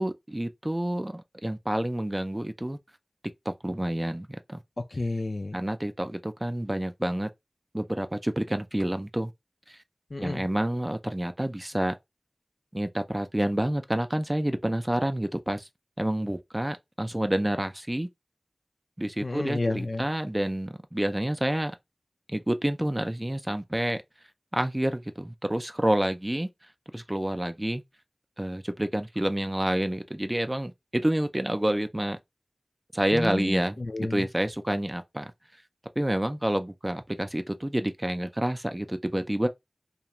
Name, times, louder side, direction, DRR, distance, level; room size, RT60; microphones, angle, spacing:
voice 1, 0.0-2.8 3.5-4.6 5.5-7.3 7.7-9.3 9.7-9.8 10.2-11.9 12.7-15.7 16.0-18.1 19.0-21.7 22.3-24.0 24.5-26.5 26.9-27.8 28.4-32.2 32.9-33.8 34.1-35.3 36.0-39.5, right 1 dB, 25° right, 0.3 m, -28 dB
voice 2, 4.8-5.6 10.1-10.5 19.2-20.1 33.1-34.3, left 2 dB, 70° left, 0.3 m, -31 dB
2.4 x 2.2 x 2.9 m
wide cardioid pair, 50°, 0 cm